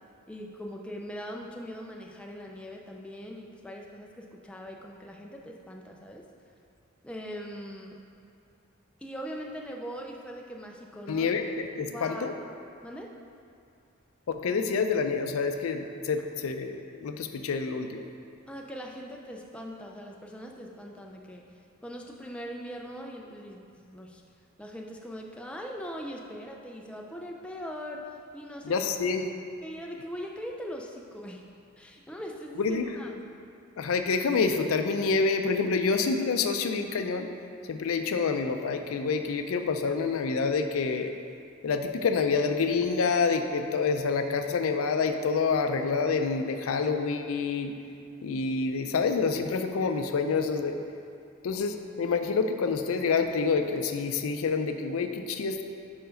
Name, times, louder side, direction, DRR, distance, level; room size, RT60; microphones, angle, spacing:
voice 1, 0.3-6.2 7.0-8.0 9.0-11.3 11.9-12.3 12.8-13.1 18.5-21.5 21.8-24.2 24.6-28.0 28.3-28.8 29.6-31.4 31.8-33.2, equal, 5° left, 0 dB, 0.4 m, -41 dB
voice 2, 11.1-12.3 14.3-18.0 28.6-29.3 32.6-32.9 33.8-37.3 37.7-41.1 41.6-47.7 48.2-50.8 51.4-55.6, left 4 dB, 75° left, 6 dB, 0.4 m, -27 dB
5.1 x 4.7 x 5.0 m, 2.5 s
head